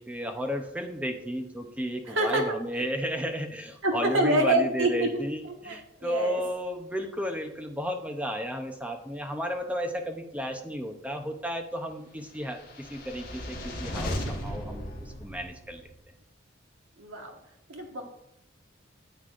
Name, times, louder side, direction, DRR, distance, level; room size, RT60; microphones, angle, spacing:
voice 1, 0.0-15.8, equal, 5° right, 5 dB, 0.6 m, -33 dB
voice 2, 2.1-2.4 3.8-5.3 5.6-6.4 17.0-17.4 17.7-18.0, right 1 dB, 85° right, 2 dB, 1.5 m, -26 dB
sound 1, 12.5-15.9, left 1 dB, 50° left, 1.5 m, -36 dB
9.4 x 8.3 x 2.5 m, 0.80 s
head